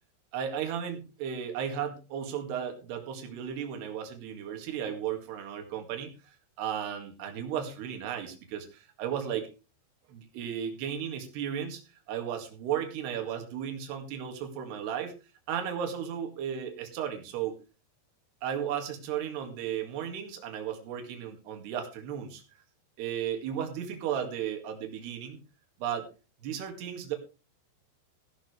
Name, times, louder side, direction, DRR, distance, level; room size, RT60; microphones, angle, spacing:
voice 1, 0.3-9.5 10.1-11.8 12.1-15.1 15.5-17.6 18.4-22.4 23.0-25.4 25.8-26.1 26.4-27.2, right 9 dB, 65° right, 4 dB, 3.9 m, -35 dB
16.0 x 11.5 x 3.3 m, 0.30 s
omnidirectional pair, 5.6 m